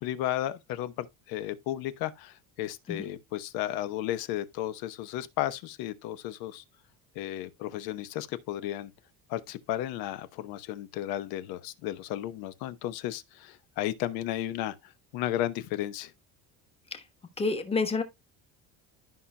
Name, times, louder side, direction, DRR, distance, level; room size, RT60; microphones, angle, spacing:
voice 1, 0.0-6.6 7.1-8.9 9.3-16.1, left 13 dB, 80° left, 1.0 m, -34 dB
voice 2, 17.4-18.0, left 4 dB, 15° left, 1.1 m, -28 dB
13.0 x 5.6 x 2.2 m
cardioid pair, 165°, 36 cm